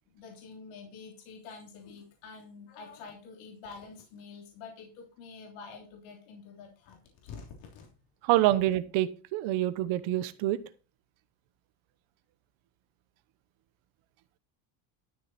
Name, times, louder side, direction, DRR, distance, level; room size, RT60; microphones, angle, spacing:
voice 1, 0.1-7.9, left 5 dB, 75° left, 0 dB, 3.2 m, -47 dB
voice 2, 8.2-10.6, right 15 dB, 70° right, 13 dB, 1.1 m, -26 dB
12.5 x 6.9 x 4.2 m, 0.36 s
cardioid pair, 150°, 49 cm